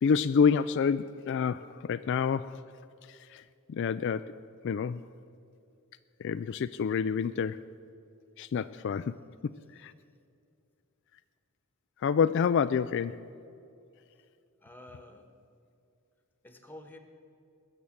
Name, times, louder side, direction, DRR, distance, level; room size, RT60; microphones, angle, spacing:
voice 1, 0.0-2.6 3.0-3.4 3.7-4.4 4.6-5.0 6.2-7.7 8.4-9.2 9.4-9.9 12.0-13.2, left 6 dB, 55° left, 12 dB, 0.3 m, -28 dB
voice 2, 14.6-15.3 16.4-17.0, left 1 dB, 10° left, 6 dB, 1.3 m, -49 dB
20.5 x 7.1 x 8.7 m, 2.5 s
head